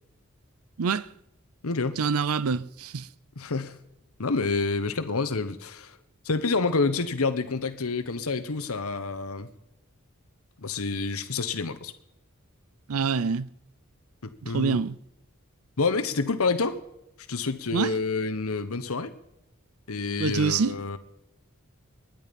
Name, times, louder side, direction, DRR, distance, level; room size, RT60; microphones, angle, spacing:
voice 1, 0.8-1.1 2.0-3.1 12.9-13.5 14.4-15.0 17.7-17.9 20.2-20.8, right 5 dB, 85° right, 0.6 m, -26 dB
voice 2, 1.6-2.0 3.4-3.8 4.2-6.0 6.2-9.5 10.6-11.9 14.2-14.8 15.8-16.8 17.3-19.1 19.9-21.0, left 3 dB, 85° left, 1.1 m, -28 dB
20.0 x 10.5 x 5.3 m
head